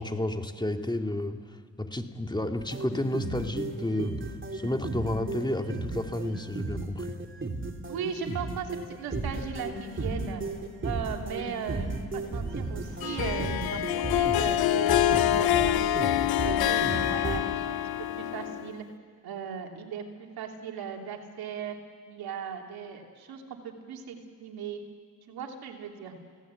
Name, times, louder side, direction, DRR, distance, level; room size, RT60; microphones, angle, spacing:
voice 1, 0.0-7.2, left 1 dB, 10° left, 4 dB, 2.3 m, -31 dB
sound 1, 2.6-17.4, right 2 dB, 35° right, 3.4 m, -34 dB
voice 2, 7.9-10.4 10.8-16.0 16.4-18.8 19.2-21.8 22.1-24.8 25.3-26.1, right 7 dB, 80° right, 2 dB, 3.1 m, -38 dB
Harp, 13.0-18.8, left 13 dB, 80° left, 0.8 m, -26 dB
29.5 x 17.5 x 8.3 m, 2.1 s
supercardioid pair, 50°, 36 cm